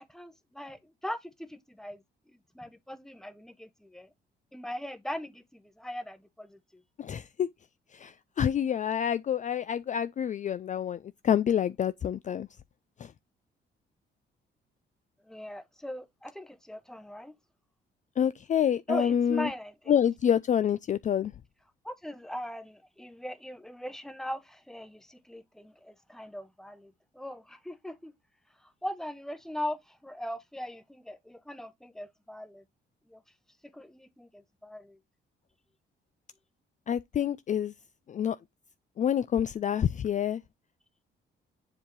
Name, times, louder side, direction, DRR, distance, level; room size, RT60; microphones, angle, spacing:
voice 1, 0.0-4.1 4.5-6.8 15.3-17.3 18.9-20.0 21.8-28.1 28.8-32.6 33.1-33.2 33.7-35.0, equal, ahead, 1.0 m, -40 dB
voice 2, 7.0-7.5 7.9-11.0 11.2-12.5 13.0-13.1 18.2-19.5 19.9-21.3 36.9-37.7 38.1-38.4 39.0-40.4, left 9 dB, 40° left, 0.4 m, -27 dB
7.4 x 2.8 x 4.6 m
cardioid pair, 90°, 20 cm